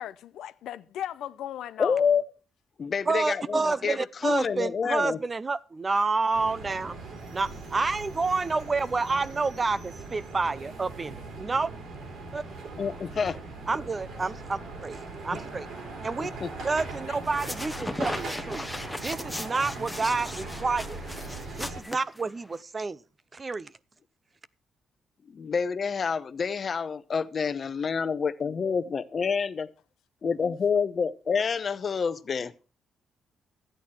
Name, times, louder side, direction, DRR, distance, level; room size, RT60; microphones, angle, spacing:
voice 1, 0.0-2.1 17.1-17.5, left 11 dB, 90° left, 0.5 m, -38 dB
voice 2, 1.8-2.2 2.8-4.0 4.2-5.2 12.8-13.4 16.4-16.5 25.3-29.7 30.2-32.5, left 6 dB, 45° left, 0.8 m, -28 dB
voice 3, 3.1-7.0 7.3-11.7 12.3-12.4 13.7-15.7 16.0-16.3 16.6-18.6 19.0-21.0 21.6-23.0 23.3-23.7, right 3 dB, 25° right, 0.5 m, -29 dB
sound 1, 6.3-21.8, right 3 dB, 75° right, 3.2 m, -40 dB
sound 2, 17.2-22.6, left 1 dB, 5° left, 0.8 m, -37 dB
13.0 x 9.1 x 4.3 m
cardioid pair, 115°, 0 cm